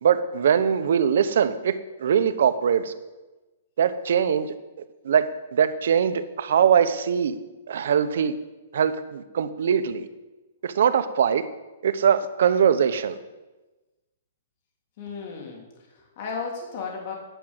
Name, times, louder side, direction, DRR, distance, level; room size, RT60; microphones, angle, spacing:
voice 1, 0.0-2.9 3.8-4.5 5.0-7.4 7.7-8.3 8.7-10.1 10.6-11.4 11.8-13.2, right 8 dB, 65° right, 10 dB, 0.9 m, -22 dB
voice 2, 15.0-17.1, left 5 dB, 45° left, -1 dB, 3.2 m, -35 dB
10.5 x 6.2 x 8.9 m, 1.1 s
hypercardioid pair, 160°, 0 cm